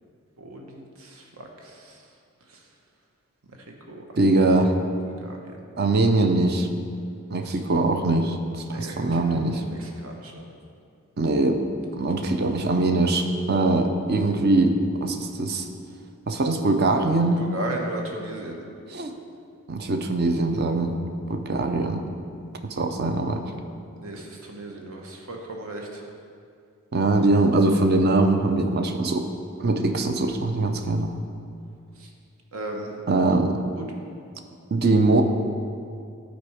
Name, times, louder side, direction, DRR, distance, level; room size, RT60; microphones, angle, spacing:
voice 1, 0.4-2.0 2.5-2.6 3.5-3.6 3.9-4.0 4.3-4.7 5.0-5.6 7.5-7.6 8.6-10.5 12.3-12.5 17.4-18.6 24.0-26.0 32.0-32.1 32.5-32.9 33.7-33.9, right 2 dB, 75° right, 1 dB, 1.1 m, -37 dB
voice 2, 4.2-4.8 5.8-6.7 7.3-9.6 11.2-11.6 12.0-15.6 16.3-17.4 18.9-19.1 19.7-20.9 21.3-22.1 22.7-23.4 26.9-29.3 29.6-31.1 33.1-33.6 34.7-35.2, right 2 dB, 45° right, 6 dB, 0.5 m, -22 dB
10.5 x 4.3 x 4.8 m, 2.4 s
head